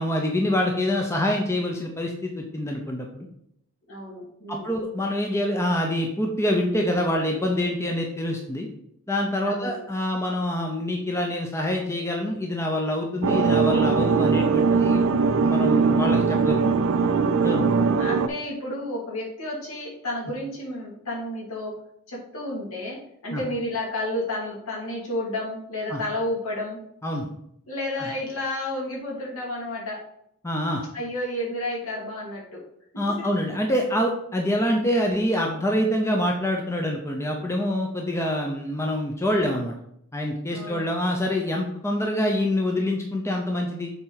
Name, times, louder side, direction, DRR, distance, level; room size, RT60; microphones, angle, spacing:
voice 1, 0.0-3.3 4.5-8.7 9.1-15.0 15.4-16.6 17.4-17.7 23.3-23.4 25.9-26.0 27.0-27.3 28.0-28.1 30.4-30.8 33.0-39.7 40.1-43.9, left 1 dB, 10° left, 1 dB, 0.7 m, -26 dB
voice 2, 3.9-4.8 9.4-9.8 17.4-21.8 22.1-26.8 27.7-30.0 30.9-32.6 40.5-40.9, left 1 dB, 70° left, -4 dB, 2.5 m, -31 dB
sound 1, 13.2-18.3, right 5 dB, 60° right, 0.4 m, -20 dB
7.0 x 4.3 x 3.9 m, 0.74 s
head